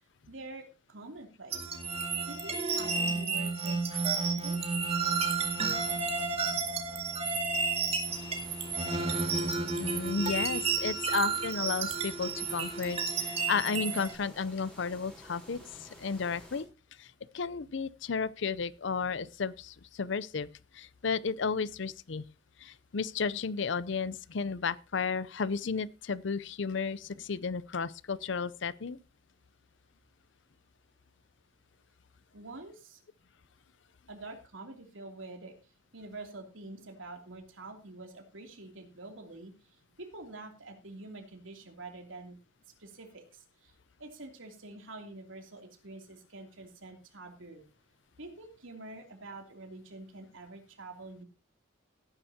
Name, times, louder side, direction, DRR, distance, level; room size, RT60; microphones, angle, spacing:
voice 1, 0.3-1.8 2.3-4.7 32.3-33.0 34.1-35.5 35.9-42.4 42.8-43.7 44.0-47.6 48.2-51.2, right 2 dB, 80° right, 3 dB, 2.9 m, -47 dB
sound 1, 1.5-14.1, right 4 dB, 30° right, 2.1 m, -31 dB
sound 2, 8.0-16.6, equal, 5° left, 3.9 m, -52 dB
voice 2, 9.8-16.7 17.0-17.1 17.3-20.5 20.7-22.2 22.6-29.0, left 5 dB, 65° left, 18 dB, 0.6 m, -33 dB
17.5 x 10.0 x 2.8 m, 0.30 s
head